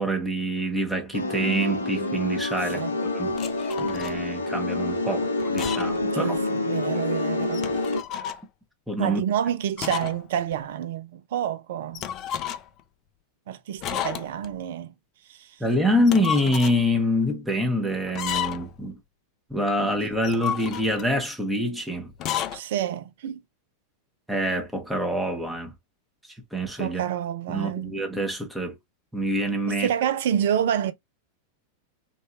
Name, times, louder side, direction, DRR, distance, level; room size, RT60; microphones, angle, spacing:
voice 1, 0.0-2.8 3.1-3.4 3.8-6.3 8.9-9.2 15.6-19.0 19.5-22.1 24.3-25.7 26.5-27.0 27.5-28.8 29.1-29.9, equal, 5° right, 1.1 m, -26 dB
sound 1, 1.1-8.0, left 2 dB, 75° left, 0.7 m, -27 dB
sound 2, 3.3-4.2 5.4-6.1 6.4-6.5 7.4-8.4 9.8-10.2 10.5-10.6 11.9-12.8 13.8-14.5 15.9-16.8 18.1-18.8 20.1-21.1 22.1-22.6, left 9 dB, 35° left, 0.4 m, -32 dB
voice 2, 6.0-7.7 9.0-12.0 13.5-14.9 15.3-15.6 22.5-23.4 26.8-27.9 29.7-30.9, right 10 dB, 55° right, 0.4 m, -28 dB
3.1 x 2.7 x 2.4 m
figure-of-eight pair, 90°, 0 cm